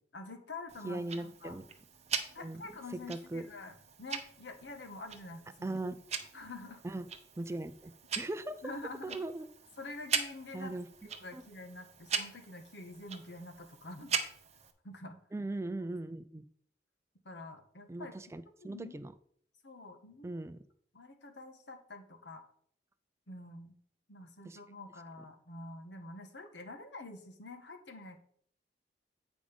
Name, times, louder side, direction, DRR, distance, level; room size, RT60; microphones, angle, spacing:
voice 1, 0.1-1.6 2.3-5.8 6.3-6.8 8.6-9.2 9.8-10.7 11.0-14.2 14.8-15.2 17.2-18.1 18.6-19.0 19.6-20.4 20.9-22.4 23.3-23.7 24.1-28.2, left 2 dB, 70° left, 5 dB, 1.3 m, -47 dB
Tick-tock, 0.7-14.7, right 6 dB, 40° right, 0.8 m, -41 dB
voice 2, 0.8-1.7 2.4-2.6 3.1-3.5 5.6-6.0 6.8-7.0 7.4-8.6 9.0-9.5 10.5-10.9 11.3-11.4 15.3-16.5 17.9-19.1 20.2-20.6 24.4-24.6, right 2 dB, 15° right, 12 dB, 0.4 m, -39 dB
9.0 x 5.1 x 5.1 m, 0.62 s
head